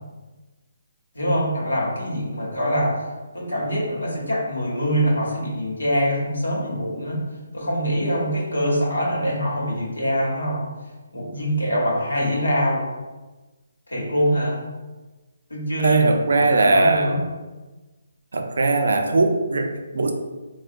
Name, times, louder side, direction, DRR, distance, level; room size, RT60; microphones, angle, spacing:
voice 1, 1.1-2.9 3.3-7.2 7.5-10.6 11.1-12.8 13.9-14.5 15.5-16.0 16.4-17.2, equal, 85° left, -4 dB, 0.9 m, -24 dB
voice 2, 15.8-17.2 18.3-20.1, right 3 dB, 65° right, 5 dB, 0.4 m, -20 dB
3.5 x 2.1 x 2.5 m, 1.2 s
figure-of-eight pair, 145°, 0 cm